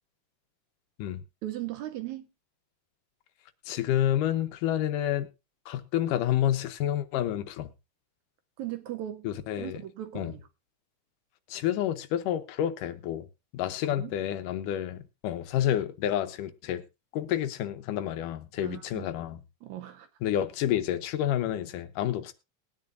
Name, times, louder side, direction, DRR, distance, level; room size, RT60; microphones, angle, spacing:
voice 1, 1.4-2.3 8.6-9.3 9.6-10.5 14.0-14.1 18.6-19.1 19.6-20.1, right 13 dB, 75° right, 1.9 m, -37 dB
voice 2, 3.7-5.3 5.7-7.7 9.2-9.8 10.2-10.3 11.5-13.3 13.5-16.8 17.1-19.4 20.2-22.3, left 11 dB, 80° left, 2.4 m, -29 dB
20.5 x 9.5 x 2.5 m
omnidirectional pair, 3.7 m